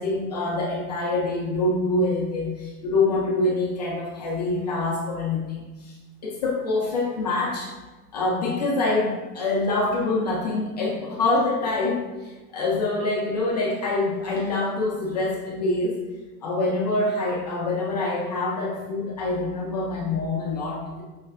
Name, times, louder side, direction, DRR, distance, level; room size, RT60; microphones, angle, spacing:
voice 1, 0.0-5.9 6.2-7.7 8.1-16.0 16.4-21.0, left 2 dB, 30° left, -3 dB, 0.4 m, -25 dB
5.6 x 3.1 x 2.3 m, 1.2 s
hypercardioid pair, 155°, 47 cm